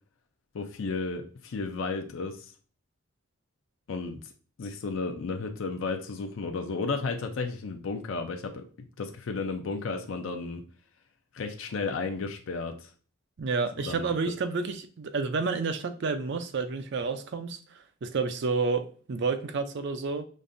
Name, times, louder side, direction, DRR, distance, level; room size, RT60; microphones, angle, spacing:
voice 1, 0.5-2.5 3.9-4.2 4.6-8.7 9.0-10.6 11.3-12.9 13.8-14.1, left 4 dB, 65° left, 0.5 m, -33 dB
voice 2, 13.4-20.2, right 4 dB, 55° right, 0.4 m, -30 dB
5.1 x 2.5 x 2.6 m
head